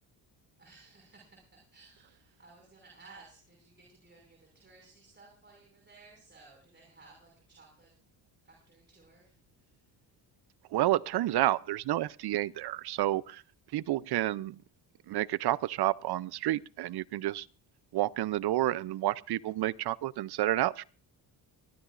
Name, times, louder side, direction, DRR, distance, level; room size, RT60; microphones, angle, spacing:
voice 1, 0.6-7.9 8.4-9.8, right 3 dB, 25° right, 5.7 m, -58 dB
voice 2, 10.7-13.4 13.7-14.6 15.1-17.5 17.9-20.8, right 15 dB, 65° right, 0.6 m, -30 dB
23.0 x 15.5 x 2.5 m
cardioid pair, 115°, 43 cm